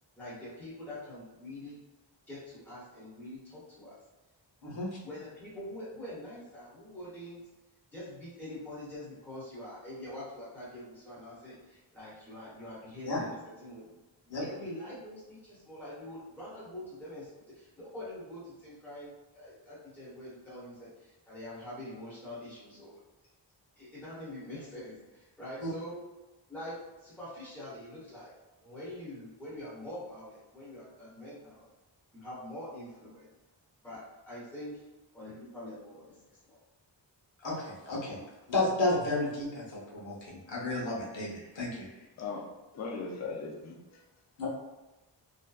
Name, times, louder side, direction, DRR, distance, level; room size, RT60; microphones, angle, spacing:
voice 1, 0.1-1.8 2.3-3.9 5.0-7.4 7.9-13.9 14.4-23.0 23.8-26.0 26.5-28.3 28.6-31.7 32.1-33.3 33.8-34.8 35.1-36.6, left 1 dB, 5° left, -10 dB, 1.0 m, -44 dB
voice 2, 4.6-5.0 13.0-13.2 14.3-14.4 25.6-25.7 37.4-41.9 44.4-44.5, left 2 dB, 85° left, -4 dB, 0.9 m, -32 dB
voice 3, 42.7-44.0, left 4 dB, 40° left, 0 dB, 0.4 m, -38 dB
2.6 x 2.1 x 2.3 m, 1.1 s
wide cardioid pair, 110°, 44 cm